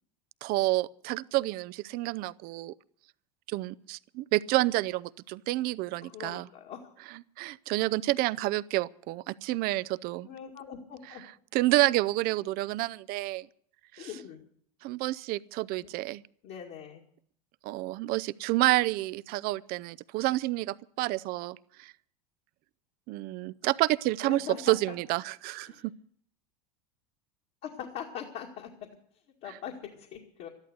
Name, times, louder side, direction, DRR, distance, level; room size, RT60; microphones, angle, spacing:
voice 1, 0.4-2.7 3.5-6.5 7.4-10.3 11.5-13.5 13.9-14.1 14.8-16.2 17.6-21.9 23.1-25.9, right 18 dB, 50° right, 0.6 m, -29 dB
voice 2, 6.0-6.9 9.7-9.9 10.2-11.2 14.0-14.4 15.8-15.9 16.4-17.0 24.2-25.0 25.6-25.9 27.6-28.7 29.4-30.5, left 8 dB, 55° left, 2.3 m, -42 dB
13.0 x 11.5 x 8.1 m
hypercardioid pair, 80°, 20 cm